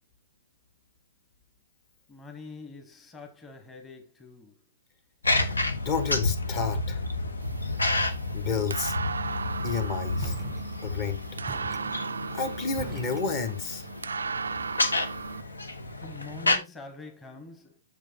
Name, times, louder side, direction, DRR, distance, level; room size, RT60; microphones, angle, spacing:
voice 1, 2.1-4.6 16.0-17.8, left 3 dB, 15° left, 1.3 m, -45 dB
sound 1, 5.2-16.6, left 2 dB, 80° left, 1.1 m, -30 dB
voice 2, 5.8-7.0 8.3-9.0 9.6-10.3 10.8-11.2 12.3-13.8, left 5 dB, 35° left, 1.4 m, -30 dB
sound 2, 7.4-15.4, right 5 dB, 75° right, 0.3 m, -36 dB
sound 3, 10.2-11.1 11.5-13.8, right 4 dB, 15° right, 0.5 m, -44 dB
7.3 x 6.3 x 2.9 m
figure-of-eight pair, 120°, 0 cm